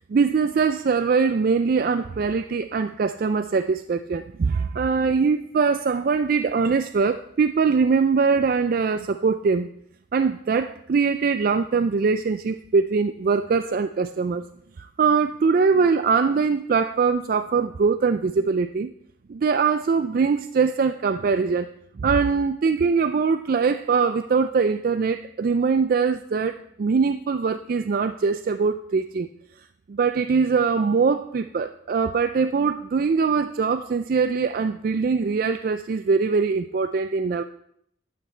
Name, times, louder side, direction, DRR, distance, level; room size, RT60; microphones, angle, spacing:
voice 1, 0.1-9.7 10.1-14.4 14.8-18.9 19.3-21.7 22.0-29.3 29.9-37.4, right 5 dB, 45° right, 9 dB, 0.3 m, -22 dB
12.0 x 8.5 x 4.4 m, 0.70 s
head